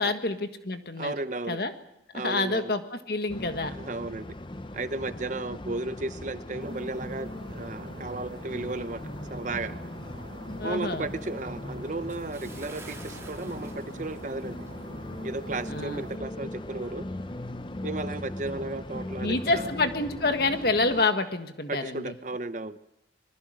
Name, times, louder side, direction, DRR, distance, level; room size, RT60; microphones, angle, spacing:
voice 1, 0.0-1.1 1.5-1.7 2.1-3.7 10.6-11.1 15.7-16.0 19.2-22.1, left 3 dB, 55° left, 8 dB, 1.6 m, -28 dB
voice 2, 1.0-1.6 2.1-2.7 3.7-4.3 4.7-9.0 9.3-9.8 10.6-14.6 15.2-17.0 17.8-19.7 21.7-22.8, right 2 dB, 40° right, 12 dB, 0.8 m, -34 dB
sound 1, 3.3-21.1, left 1 dB, 25° left, 0.7 m, -39 dB
sound 2, 6.6-16.2, right 2 dB, 80° right, 1.4 m, -47 dB
Bathtub (filling or washing) / Splash splatter, 12.1-15.0 15.3-15.5 16.0-16.1, right 3 dB, 15° right, 2.3 m, -50 dB
26.0 x 21.5 x 6.5 m, 0.86 s
head